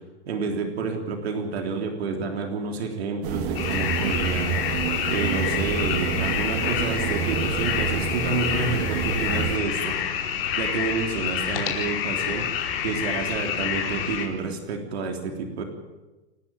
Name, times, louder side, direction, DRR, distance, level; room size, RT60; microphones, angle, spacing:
voice 1, 0.3-4.6 5.1-10.1 10.6-12.5 12.8-15.6, right 4 dB, 65° right, 4 dB, 3.7 m, -29 dB
sound 1, 3.2-9.6, right 7 dB, 50° right, 2.5 m, -28 dB
sound 2, 3.5-14.2, left 9 dB, 55° left, 4.9 m, -28 dB
28.5 x 11.5 x 9.1 m, 1.1 s
hypercardioid pair, 115°, 33 cm